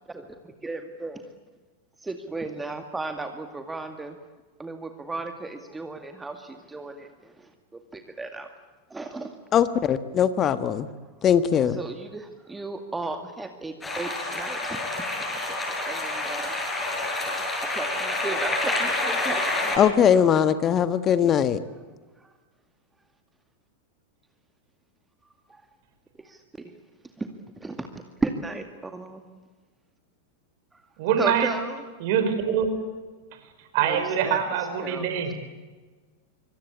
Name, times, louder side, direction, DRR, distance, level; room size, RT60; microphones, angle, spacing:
voice 1, 0.1-1.3 2.0-4.2 4.6-8.5 8.9-9.4 11.7-14.8 15.2-15.4 15.9-16.6 17.6-19.7 22.2-22.3 25.5-25.6 26.2-26.7 27.2-27.3 27.6-27.9 28.2-29.2 31.2-31.8 33.8-34.4 34.8-35.0, right 3 dB, 10° right, 2.2 m, -35 dB
voice 2, 9.5-10.9 11.2-11.8 19.8-21.6, left 8 dB, 30° left, 1.5 m, -20 dB
sound 1, 13.8-19.8, left 2 dB, 15° left, 7.2 m, -28 dB
voice 3, 31.0-31.5 32.0-32.7 33.7-35.3, right 8 dB, 50° right, 4.9 m, -24 dB
26.5 x 25.0 x 8.6 m
figure-of-eight pair, 90°, 0 cm